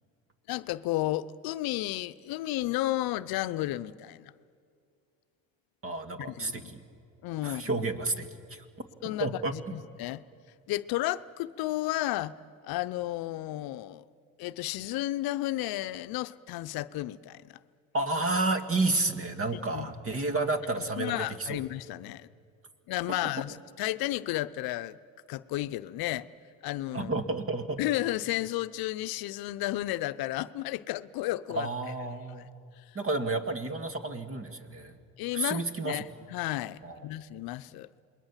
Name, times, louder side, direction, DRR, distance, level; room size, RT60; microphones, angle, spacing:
voice 1, 0.5-4.3 6.3-6.7 7.2-7.6 9.0-10.2 10.7-12.3 12.6-14.0 14.4-17.6 19.7-19.9 20.4-20.5 20.9-22.3 22.9-25.0 25.3-26.3 26.6-27.1 27.8-31.7 35.2-36.0 36.3-38.0, left 16 dB, 70° left, 0.7 m, -32 dB
voice 2, 5.8-6.8 7.4-8.6 9.2-9.5 17.9-21.6 26.9-27.8 31.5-32.5 32.9-35.0 35.3-36.0 36.8-37.1, right 2 dB, 35° right, 2.1 m, -31 dB
28.0 x 21.5 x 7.4 m
supercardioid pair, 80°, 38 cm